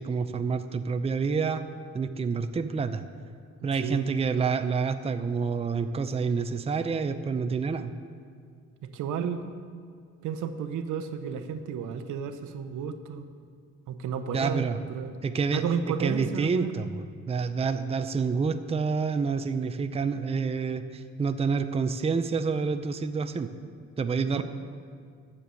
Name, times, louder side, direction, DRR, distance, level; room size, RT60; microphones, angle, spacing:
voice 1, 0.0-1.6 1.9-3.0 3.6-7.9 14.3-14.8 15.2-15.6 16.0-23.5 24.0-24.4, right 5 dB, 20° right, 9 dB, 0.5 m, -28 dB
voice 2, 3.7-4.1 8.9-9.4 10.2-13.2 13.9-15.1 15.5-16.7 24.3-24.4, right 7 dB, 80° right, 9 dB, 0.9 m, -32 dB
10.0 x 6.9 x 7.6 m, 2.2 s
cardioid pair, 90°, 30 cm